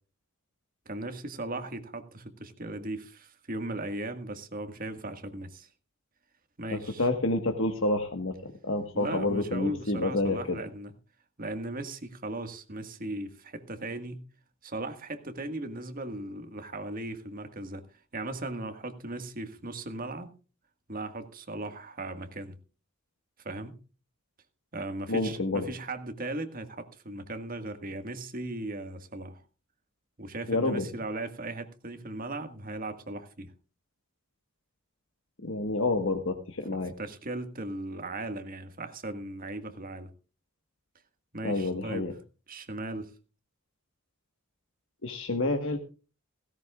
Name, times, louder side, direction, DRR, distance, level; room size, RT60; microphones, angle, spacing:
voice 1, 0.8-5.7 6.6-7.1 8.9-10.9 11.4-14.2 14.6-17.8 18.1-20.3 20.9-22.6 23.4-23.8 24.7-29.4 30.2-33.5 37.0-40.1 41.3-42.1 42.5-43.1, right 2 dB, 45° right, 1.7 m, -37 dB
voice 2, 6.7-10.6 25.1-25.6 30.5-30.9 35.4-36.9 41.4-42.1 45.0-45.8, left 2 dB, 65° left, 1.4 m, -29 dB
17.0 x 16.5 x 2.4 m
head